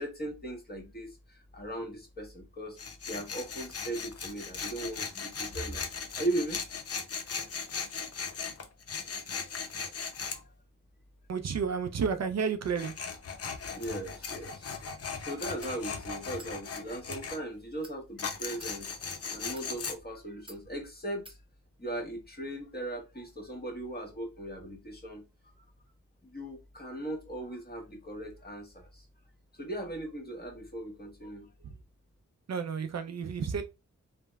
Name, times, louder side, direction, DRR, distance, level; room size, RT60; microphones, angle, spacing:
voice 1, 0.0-2.8 3.1-6.6 10.1-10.5 13.7-14.7 15.2-18.9 19.3-21.4 21.8-25.6 26.2-29.0 29.5-31.5, right 1 dB, 30° left, 1.3 m, -38 dB
Tools, 2.8-10.4 12.6-17.4 18.2-19.9, left 5 dB, 50° left, 0.5 m, -38 dB
voice 2, 11.3-12.9 31.6-31.8 32.5-33.6, right 6 dB, 55° right, 0.4 m, -31 dB
sound 1, 15.6-15.8 16.4-16.6 17.0-17.2 17.8-18.0 18.5-18.7 19.4-19.7 20.5-20.6 21.2-21.4, right 1 dB, 15° right, 0.7 m, -51 dB
3.2 x 2.1 x 2.2 m
cardioid pair, 50°, 31 cm